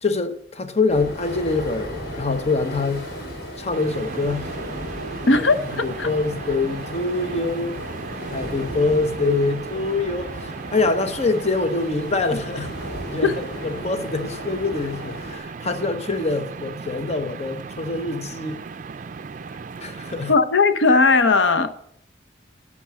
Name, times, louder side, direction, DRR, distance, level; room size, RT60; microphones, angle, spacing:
voice 1, 0.0-3.0 3.6-4.5 5.3-5.4 5.8-7.8 8.3-12.7 13.1-18.6 19.8-20.3, left 3 dB, 35° left, 0.9 m, -25 dB
sound 1, 0.9-15.4, equal, 60° left, 5.2 m, -35 dB
sound 2, 3.7-20.3, right 5 dB, 45° right, 0.4 m, -36 dB
voice 2, 5.3-6.1 13.2-13.4 20.3-21.7, left 3 dB, 85° left, 0.8 m, -17 dB
11.5 x 6.1 x 7.4 m
head